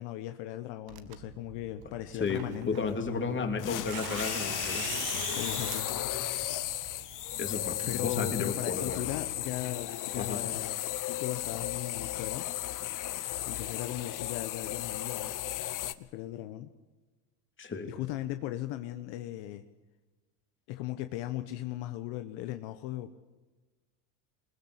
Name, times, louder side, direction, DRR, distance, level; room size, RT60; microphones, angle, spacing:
voice 1, 0.0-3.4 5.3-5.9 7.2-7.4 7.9-10.7 11.1-12.5 13.4-15.3 16.0-16.7 17.8-19.6 20.7-23.1, left 14 dB, 70° left, 9 dB, 1.2 m, -38 dB
Tearing, 0.9-8.6, right 11 dB, 55° right, 1.9 m, -44 dB
voice 2, 2.1-4.9 7.4-9.0 10.2-10.4 17.6-17.9, left 4 dB, 25° left, 5 dB, 3.2 m, -33 dB
sound 1, 3.6-15.9, left 14 dB, 45° left, 1.0 m, -35 dB
21.0 x 20.0 x 8.2 m, 1.2 s
supercardioid pair, 120°, 44 cm